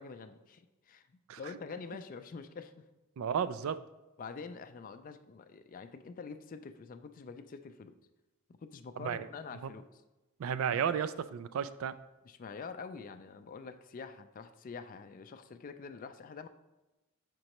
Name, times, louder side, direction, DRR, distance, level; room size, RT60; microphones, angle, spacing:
voice 1, 0.0-2.9 4.2-8.0 8.6-10.0 10.7-10.8 12.2-16.5, left 5 dB, 40° left, 10 dB, 0.3 m, -46 dB
voice 2, 3.2-3.8 9.0-9.3 10.4-11.9, right 8 dB, 65° right, 13 dB, 0.3 m, -33 dB
6.6 x 5.2 x 3.0 m, 1.1 s
head